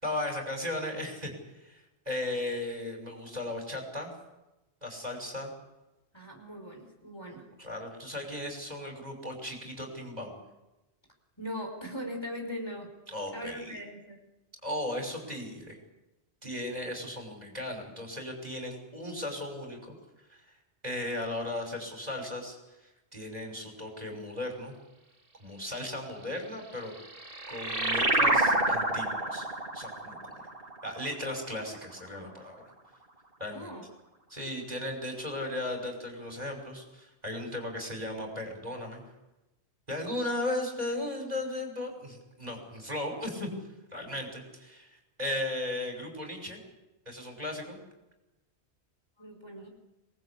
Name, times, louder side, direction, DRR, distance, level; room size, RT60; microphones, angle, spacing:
voice 1, 0.0-1.3 1.6-1.8 2.1-4.1 4.8-5.5 7.6-10.4 13.1-13.8 14.6-15.8 16.4-19.9 20.3-20.4 20.8-22.6 23.1-24.7 25.4-26.9 27.5-29.5 29.7-30.3 30.8-32.6 33.4-33.7 34.3-39.0 39.9-43.5 43.9-46.6 47.1-47.8, left 1 dB, 35° right, 3 dB, 5.8 m, -36 dB
voice 2, 6.1-7.4 11.4-12.9 13.3-14.2 33.5-33.8 49.2-49.7, equal, 25° left, 2 dB, 5.3 m, -40 dB
sound 1, 26.8-31.8, right 2 dB, 50° right, 3.2 m, -29 dB
27.0 x 20.0 x 8.5 m, 0.98 s
omnidirectional pair, 1.1 m